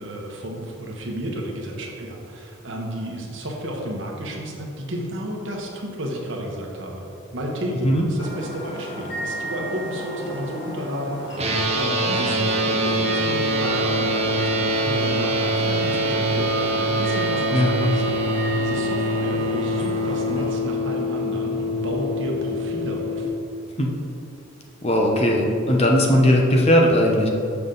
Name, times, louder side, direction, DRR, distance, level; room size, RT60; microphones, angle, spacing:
voice 1, 0.0-7.1 7.3-23.3, equal, 60° right, -1 dB, 1.2 m, -32 dB
sound 1, 8.2-20.5, equal, 60° left, 1.6 m, -33 dB
sound 2, 11.4-23.3, equal, 30° right, 0.7 m, -24 dB
voice 2, 24.8-27.3, equal, 30° left, 0 dB, 0.8 m, -18 dB
7.2 x 5.9 x 3.9 m, 2.7 s
head